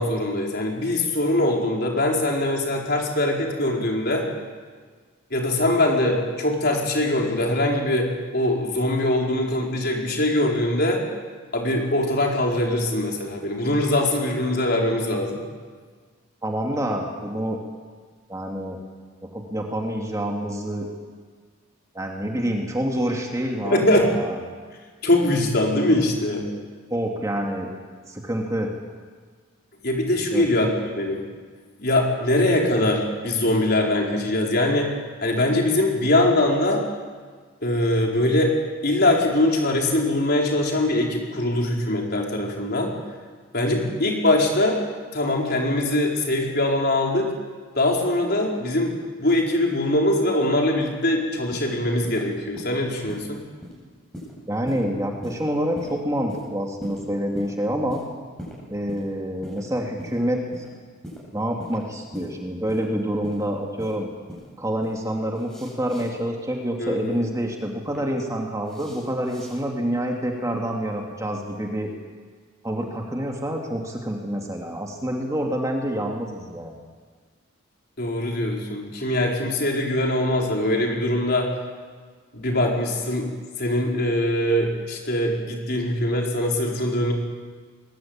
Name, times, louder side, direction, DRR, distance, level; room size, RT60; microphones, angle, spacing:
voice 1, 0.0-4.3 5.3-11.0 11.5-15.4 23.6-24.1 25.0-26.5 29.8-31.2 31.8-34.9 35.2-36.8 37.6-38.5 38.8-42.9 43.5-44.8 45.1-47.3 47.7-53.4 66.8-67.2 78.0-81.5 82.3-83.3 83.6-87.1, left 1 dB, 45° left, 0 dB, 4.7 m, -22 dB
voice 2, 16.4-17.6 18.3-18.8 19.2-20.9 21.9-24.3 26.9-27.7 28.1-28.7 30.1-30.4 54.5-58.0 58.7-60.6 61.3-64.1 64.6-71.9 72.6-76.8, equal, 15° right, 1 dB, 2.4 m, -27 dB
sound 1, 51.5-51.7 52.0-52.3 52.6-52.8 53.1-53.3 53.6-53.8 54.1-54.3 54.7-54.9 55.2-55.4 55.8-55.9 56.3-56.5 56.8-57.0 57.3-57.5 57.9-58.1 58.4-58.6 58.9-59.1 59.4-59.6 60.0-60.2 60.5-60.7 61.0-61.2 61.6-61.8 62.1-62.3 62.7-62.8 63.2-63.4 63.8-63.9 64.3-64.5 64.8-65.0 65.4-66.0 67.5-68.0 68.7-69.6, equal, 5° left, 7.8 m, -40 dB
22.0 x 21.5 x 9.0 m, 1.5 s
head